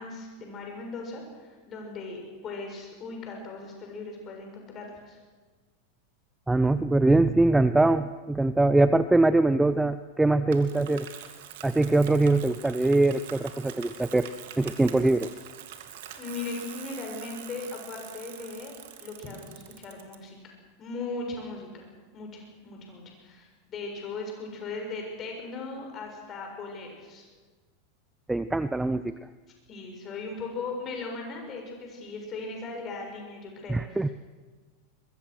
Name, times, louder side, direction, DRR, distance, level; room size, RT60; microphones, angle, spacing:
voice 1, 0.0-5.2 16.2-18.7 19.0-20.5 20.8-21.9 22.1-27.3 29.7-33.8, left 3 dB, 35° left, 2 dB, 7.1 m, -38 dB
voice 2, 6.5-11.1 11.6-14.3 14.6-15.3 28.3-29.2 33.7-34.1, right 2 dB, 10° right, 14 dB, 0.6 m, -22 dB
Bicycle, 10.5-20.1, right 10 dB, 60° right, 2.4 m, -44 dB
24.0 x 22.0 x 6.4 m, 1.4 s
figure-of-eight pair, 90°, 0 cm